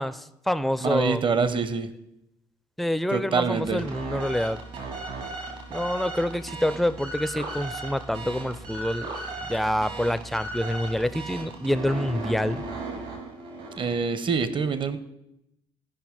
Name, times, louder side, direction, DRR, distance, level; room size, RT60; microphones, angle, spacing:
voice 1, 0.0-1.2 2.8-4.6 5.7-9.1 9.5-12.6, left 1 dB, ahead, 15 dB, 0.4 m, -27 dB
voice 2, 0.8-1.9 3.1-3.9 13.7-15.0, right 5 dB, 40° right, 13 dB, 0.8 m, -25 dB
sound 1, 3.5-14.1, right 3 dB, 65° right, 2.5 m, -36 dB
14.0 x 5.6 x 3.8 m, 0.84 s
hypercardioid pair, 50°, 13 cm